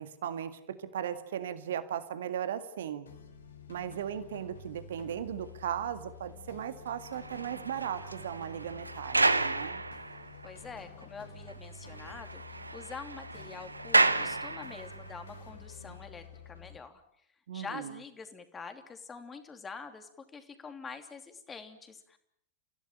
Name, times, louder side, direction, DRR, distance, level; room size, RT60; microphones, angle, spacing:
voice 1, 0.0-3.1 3.7-9.8 17.5-18.0, right 9 dB, 60° right, 11 dB, 1.9 m, -37 dB
sound 1, 3.1-16.8, left 4 dB, 70° left, 4.2 m, -50 dB
sound 2, 7.0-10.7 11.0-11.1 11.5-11.6 11.8-15.1 15.8-16.0, right 3 dB, 80° right, 1.1 m, -31 dB
voice 2, 10.4-12.4 12.7-17.0 17.5-22.2, left 5 dB, 20° left, 8 dB, 3.0 m, -45 dB
29.5 x 16.0 x 9.1 m, 0.73 s
figure-of-eight pair, 90°, 0 cm